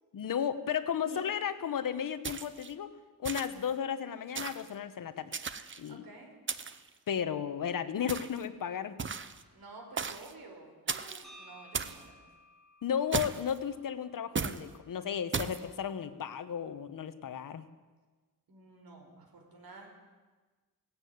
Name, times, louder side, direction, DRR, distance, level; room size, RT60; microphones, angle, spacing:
voice 1, 0.1-2.9 3.2-5.3 5.8-6.0 7.1-9.1 12.8-17.7, left 8 dB, 65° left, 11 dB, 1.2 m, -34 dB
sound 1, 2.2-2.7 3.2-3.7 4.4-4.7 5.3-5.9 6.5-6.9 8.1-8.4 9.0-9.4 10.0-10.3 10.9-11.2 11.7-12.0 13.1-13.6 14.4-14.6 15.3-15.6, right 5 dB, 35° right, 0.9 m, -36 dB
voice 2, 5.9-6.3 9.5-12.1 18.5-19.9, right 3 dB, 80° right, 2 dB, 5.4 m, -51 dB
sound 2, 11.2-15.3, equal, ahead, 3.9 m, -58 dB
17.5 x 16.0 x 9.6 m, 1.3 s
wide cardioid pair, 170°, 35 cm